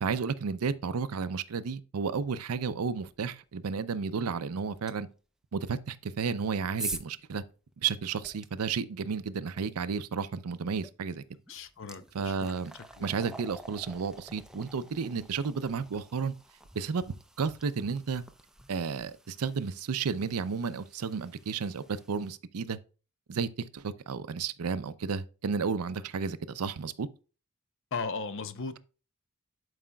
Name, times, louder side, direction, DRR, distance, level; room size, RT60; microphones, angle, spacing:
voice 1, 0.0-5.1 5.5-7.4 7.8-11.2 12.1-12.7 13.0-16.3 16.7-17.0 17.4-18.2 18.7-22.8 23.3-27.1, right 5 dB, 90° right, 0.5 m, -32 dB
sound 1, 4.9-5.0 6.0-8.5 10.8-10.9 11.3-22.3, right 2 dB, 5° right, 0.5 m, -46 dB
voice 2, 11.5-12.5 13.0-13.1 27.9-28.8, left 4 dB, 60° left, 0.7 m, -37 dB
11.0 x 4.9 x 2.3 m
head